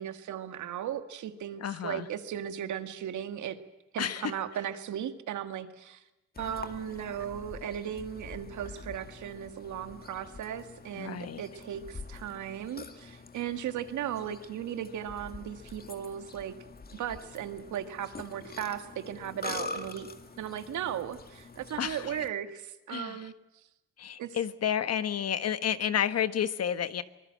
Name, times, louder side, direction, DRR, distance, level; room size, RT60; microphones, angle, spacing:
voice 1, 0.0-3.6 3.9-6.0 6.4-16.5 16.9-20.1 20.4-23.3 24.2-24.4, right 10 dB, 75° right, 9 dB, 1.9 m, -36 dB
voice 2, 1.6-2.1 4.0-4.3 11.0-11.4 21.8-22.2 22.9-23.2 24.0-27.0, left 9 dB, 55° left, 12 dB, 1.3 m, -31 dB
Burping eructation, 6.3-22.3, left 4 dB, 30° left, 2.0 m, -45 dB
24.0 x 20.0 x 7.6 m, 0.99 s
cardioid pair, 90°, 30 cm